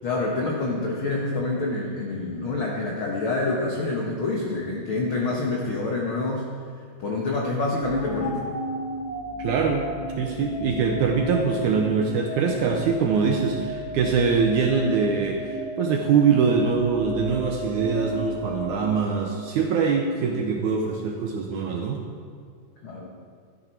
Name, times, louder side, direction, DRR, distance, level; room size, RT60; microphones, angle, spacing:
voice 1, 0.0-6.5 7.0-8.5 22.8-23.1, left 2 dB, 80° left, -2 dB, 1.1 m, -27 dB
sound 1, 7.8-19.9, equal, 65° left, 0.3 m, -33 dB
voice 2, 9.4-9.9 10.2-22.0, right 5 dB, 80° right, 2 dB, 1.8 m, -23 dB
13.5 x 11.0 x 4.5 m, 2.2 s
omnidirectional pair, 4.5 m